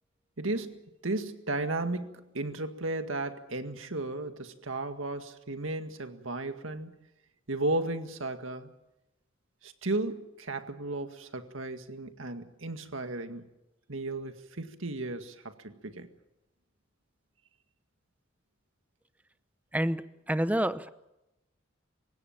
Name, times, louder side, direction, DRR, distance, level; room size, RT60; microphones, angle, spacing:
voice 1, 0.4-6.9 7.5-8.7 9.6-13.5 13.9-16.1, right 2 dB, 85° right, 7 dB, 1.9 m, -34 dB
voice 2, 20.3-20.9, right 1 dB, 10° right, 13 dB, 0.8 m, -27 dB
27.5 x 16.5 x 7.3 m, 0.93 s
head